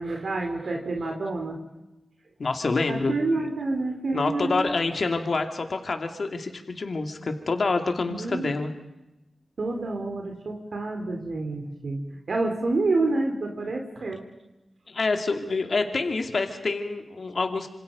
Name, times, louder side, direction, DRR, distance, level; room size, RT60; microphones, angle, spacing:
voice 1, 0.0-1.6 2.9-4.7 8.1-8.6 9.6-14.2, right 2 dB, 70° right, 2 dB, 3.8 m, -28 dB
voice 2, 2.4-3.5 4.1-8.7 14.9-17.7, left 3 dB, 65° left, 5 dB, 2.7 m, -27 dB
27.0 x 26.5 x 5.4 m, 1.0 s
cardioid pair, 60°, 0 cm